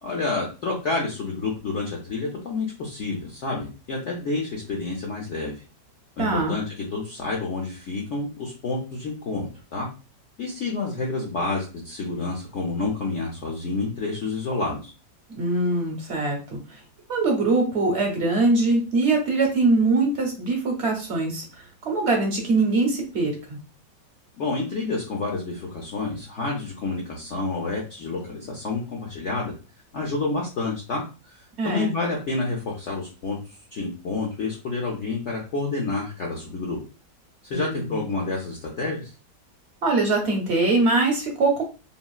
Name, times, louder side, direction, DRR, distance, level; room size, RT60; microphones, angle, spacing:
voice 1, 0.0-5.6 6.2-9.9 10.4-14.9 24.4-29.5 29.9-36.8 37.4-39.1, left 3 dB, 70° left, -2 dB, 0.7 m, -29 dB
voice 2, 6.2-6.5 15.3-16.6 17.1-21.4 21.8-23.6 31.6-31.9 37.5-38.0 39.8-41.6, right 3 dB, 55° right, 1 dB, 0.7 m, -22 dB
3.8 x 2.0 x 2.3 m, 0.33 s
omnidirectional pair, 1.9 m